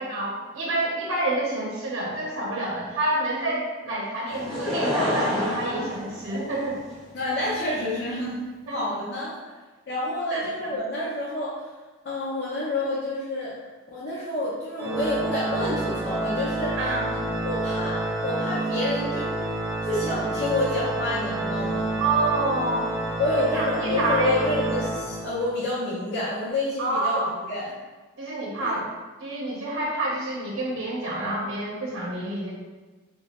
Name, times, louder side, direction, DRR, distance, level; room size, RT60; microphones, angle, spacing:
voice 1, 0.0-6.8 8.7-8.8 10.3-10.7 16.8-17.1 22.0-22.9 23.5-24.4 26.8-27.3 28.2-28.8 29.2-32.5, right 2 dB, 75° right, -4 dB, 0.7 m, -28 dB
Laughter / Crowd, 4.3-6.9 7.6-7.7, left 1 dB, ahead, 1.0 m, -27 dB
voice 2, 7.1-8.3 8.7-9.3 9.9-11.6 12.0-13.5 13.9-16.8 17.4-18.0 18.2-19.3 19.8-21.9 23.2-27.7 28.6-28.7, left 1 dB, 55° left, -8 dB, 0.7 m, -28 dB
Organ, 14.8-25.6, right 2 dB, 15° right, 0.3 m, -29 dB
3.0 x 2.2 x 4.2 m, 1.3 s
head